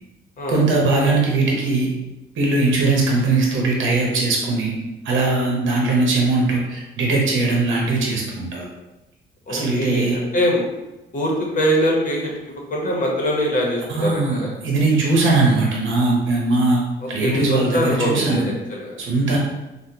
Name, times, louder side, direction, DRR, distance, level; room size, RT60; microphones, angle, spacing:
voice 1, 0.5-1.9 2.4-4.7 5.0-8.7 9.5-10.2 13.9-16.8 17.1-18.5 19.0-19.4, right 3 dB, 75° right, -2 dB, 0.8 m, -20 dB
voice 2, 9.5-10.7 11.1-14.5 17.0-19.0, equal, 40° left, -2 dB, 1.0 m, -23 dB
3.5 x 2.2 x 2.8 m, 1.0 s
cardioid pair, 90°, 20 cm